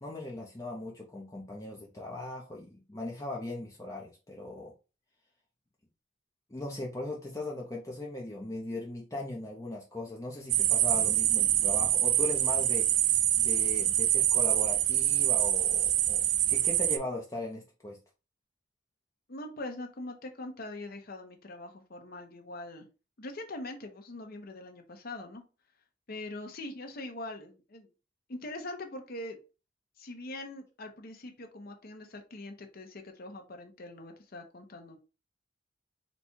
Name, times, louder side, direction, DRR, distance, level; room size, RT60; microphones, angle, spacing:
voice 1, 0.0-4.7 6.5-12.9 13.4-18.0, left 2 dB, 15° left, -2 dB, 0.6 m, -38 dB
sound 1, 10.5-17.0, right 12 dB, 65° right, 0.4 m, -25 dB
voice 2, 19.3-22.9 23.2-25.4 26.1-27.9 28.3-29.4 30.0-35.0, left 2 dB, 55° left, 4 dB, 0.8 m, -42 dB
4.2 x 2.2 x 4.4 m, 0.32 s
head